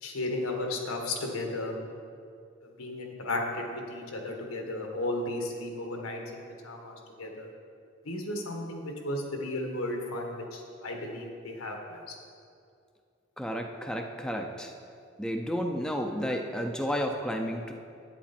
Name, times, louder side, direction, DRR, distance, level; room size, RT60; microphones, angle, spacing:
voice 1, 0.0-1.7 2.8-7.5 8.0-12.0, left 2 dB, 85° left, 1 dB, 1.5 m, -34 dB
voice 2, 13.4-14.7 15.2-17.7, equal, 5° left, 3 dB, 0.5 m, -32 dB
10.0 x 8.9 x 4.3 m, 2.4 s
head